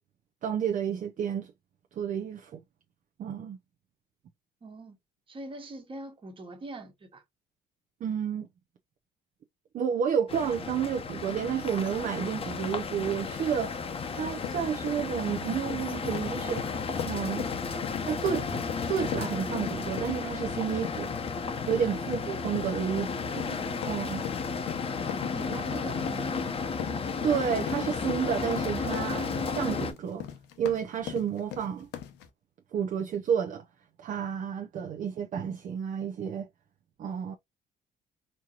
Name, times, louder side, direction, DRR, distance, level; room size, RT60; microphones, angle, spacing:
voice 1, 0.4-1.5 2.0-2.6 3.2-3.6 8.0-8.5 9.7-13.8 14.1-16.7 17.1-17.5 18.0-18.6 18.8-21.1 21.7-23.3 23.9-24.2 27.2-30.2 30.6-31.9 32.7-33.6 34.0-36.5 37.0-37.4, right 8 dB, 50° right, 0.6 m, -30 dB
voice 2, 4.6-5.0 5.3-7.2 22.0-22.2 23.3-23.7 25.3-26.5, right 2 dB, 30° right, 1.4 m, -43 dB
sound 1, 10.3-29.9, left 5 dB, 35° left, 0.8 m, -33 dB
sound 2, 14.4-32.3, left 11 dB, 85° left, 0.9 m, -40 dB
4.4 x 2.9 x 2.4 m
cardioid pair, 110°, 17 cm